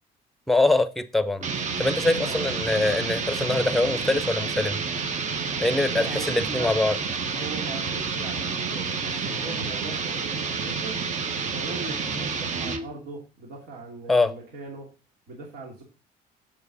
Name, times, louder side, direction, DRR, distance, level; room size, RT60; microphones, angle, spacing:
voice 1, 0.5-1.4 1.8-4.8 5.6-6.9 14.1-14.3, left 2 dB, ahead, 0.8 m, -23 dB
sound 1, 1.4-12.9, right 5 dB, 45° right, 1.2 m, -29 dB
voice 2, 2.1-2.5 3.8-4.0 5.9-6.7 7.3-11.0 11.5-14.9 15.3-15.8, right 2 dB, 75° right, 2.8 m, -39 dB
7.8 x 7.6 x 4.1 m
cardioid pair, 110°, 17 cm